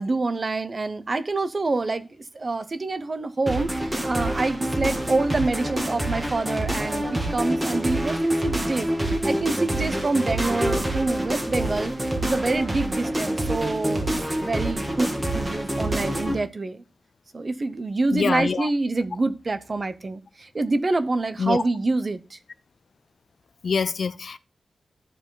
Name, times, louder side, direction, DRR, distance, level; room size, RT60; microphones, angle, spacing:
voice 1, 0.0-2.1 2.3-16.8 17.3-22.4, right 3 dB, 30° right, 0.6 m, -26 dB
sound 1, 3.5-16.4, right 1 dB, 15° right, 1.8 m, -26 dB
voice 2, 18.1-18.7 21.4-21.6 23.6-24.4, left 5 dB, 55° left, 0.4 m, -25 dB
13.5 x 4.8 x 3.8 m
wide cardioid pair, 175°, 0 cm